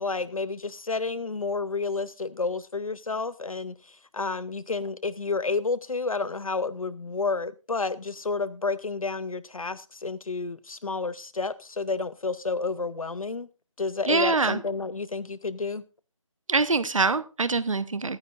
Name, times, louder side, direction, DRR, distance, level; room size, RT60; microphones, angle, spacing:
voice 1, 0.0-13.5 13.8-15.8, left 4 dB, 80° left, 0.6 m, -30 dB
voice 2, 14.1-14.6 16.5-18.2, right 3 dB, 70° right, 0.8 m, -24 dB
22.5 x 9.6 x 2.5 m
figure-of-eight pair, 160°, 17 cm